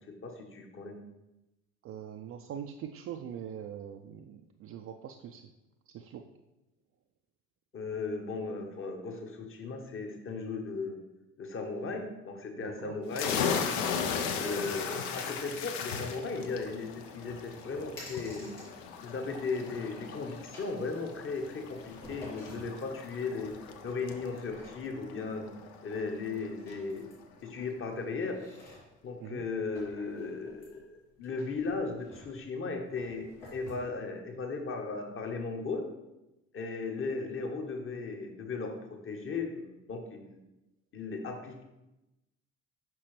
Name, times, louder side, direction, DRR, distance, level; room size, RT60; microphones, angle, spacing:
voice 1, 0.2-0.9 7.7-11.0 11.4-13.7 14.3-18.5 19.0-23.5 23.8-25.5 25.8-27.1 27.4-28.4 29.0-33.3 33.5-35.9 36.5-38.7 39.0-40.4 40.9-41.6, left 4 dB, 30° left, 3 dB, 1.2 m, -36 dB
voice 2, 1.8-5.4 5.9-6.2 12.6-13.0 29.2-29.4, right 9 dB, 40° right, 3 dB, 0.4 m, -42 dB
sound 1, 13.1-26.5, left 6 dB, 65° left, 0.7 m, -37 dB
sound 2, 16.5-33.7, left 1 dB, 80° left, 2.3 m, -54 dB
6.0 x 5.7 x 3.3 m, 0.96 s
figure-of-eight pair, 55°, 39 cm